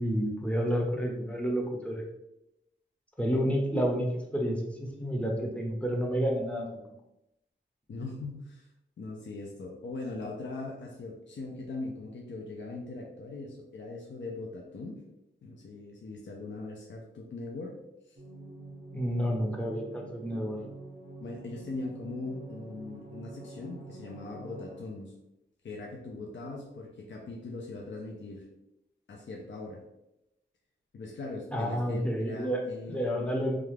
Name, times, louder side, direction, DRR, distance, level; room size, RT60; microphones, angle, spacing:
voice 1, 0.0-2.0 3.2-6.8 18.9-20.6 31.5-32.6 32.9-33.6, equal, 5° left, -1 dB, 0.7 m, -30 dB
voice 2, 7.9-8.7 9.0-15.0 15.4-17.7 18.1-18.2 21.2-25.1 25.6-28.4 29.1-29.8 30.9-33.1, left 3 dB, 65° left, -1 dB, 0.5 m, -40 dB
sound 1, 18.2-24.8, right 2 dB, 40° right, 0.6 m, -46 dB
2.4 x 2.3 x 3.2 m, 0.87 s
wide cardioid pair, 85°, 20 cm